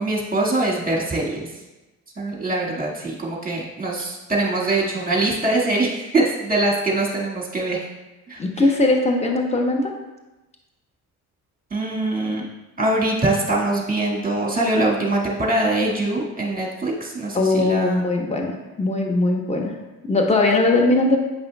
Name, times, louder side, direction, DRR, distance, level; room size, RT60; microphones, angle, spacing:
voice 1, 0.0-1.5 2.2-7.8 8.3-8.4 11.7-12.5 12.8-18.0, right 2 dB, 20° right, -3 dB, 1.9 m, -23 dB
voice 2, 8.4-9.9 17.3-19.7 20.1-21.2, left 2 dB, 15° left, 1 dB, 1.0 m, -20 dB
9.0 x 5.4 x 2.3 m, 1.1 s
hypercardioid pair, 55°, 43 cm